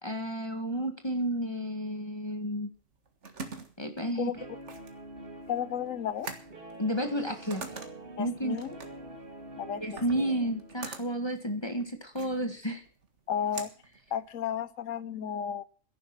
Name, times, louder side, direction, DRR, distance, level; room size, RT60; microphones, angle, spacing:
voice 1, 0.0-2.7 3.8-4.3 6.8-7.6 8.2-8.6 9.8-12.8, equal, 20° left, 6 dB, 1.7 m, -31 dB
sound 1, 2.8-14.7, right 4 dB, 65° right, 2.0 m, -46 dB
Guitar, 4.3-10.9, right 1 dB, 45° right, 2.6 m, -46 dB
voice 2, 5.5-6.3 8.2-8.8 9.6-10.4 13.3-13.7 14.1-15.6, left 8 dB, 80° left, 16 dB, 1.3 m, -33 dB
13.0 x 11.0 x 5.9 m, 0.42 s
omnidirectional pair, 1.3 m